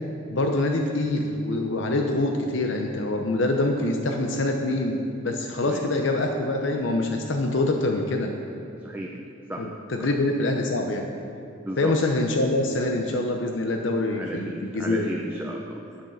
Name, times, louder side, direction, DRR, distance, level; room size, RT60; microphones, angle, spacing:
voice 1, 0.3-8.3 9.6-11.1 11.8-15.1, left 2 dB, 70° left, 3 dB, 0.7 m, -25 dB
voice 2, 8.8-9.1 9.5-9.7 10.0-10.1 11.6-12.0 14.2-16.0, right 1 dB, 10° right, -1 dB, 0.5 m, -34 dB
7.9 x 7.3 x 6.4 m, 2.7 s
head